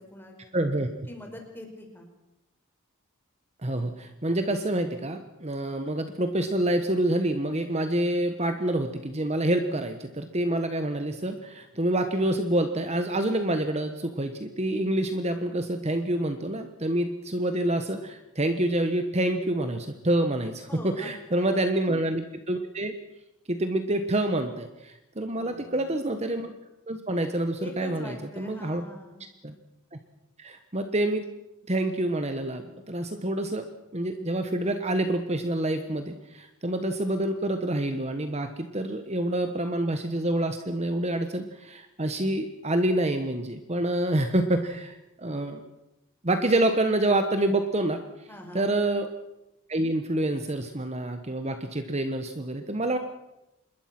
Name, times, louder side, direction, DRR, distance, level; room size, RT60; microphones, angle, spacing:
voice 1, 0.0-0.3 1.1-2.1 20.7-21.7 25.3-25.9 27.6-29.3 48.3-48.7, left 1 dB, 10° left, 2 dB, 4.9 m, -43 dB
voice 2, 0.5-0.9 3.6-22.9 23.5-26.5 26.9-28.9 29.4-29.5 29.9-30.0 30.4-31.3 31.7-33.7 33.9-45.6 46.2-48.0 48.5-49.1 49.7-53.0, right 1 dB, 30° right, 7 dB, 1.3 m, -27 dB
26.5 x 21.5 x 6.1 m, 0.92 s
head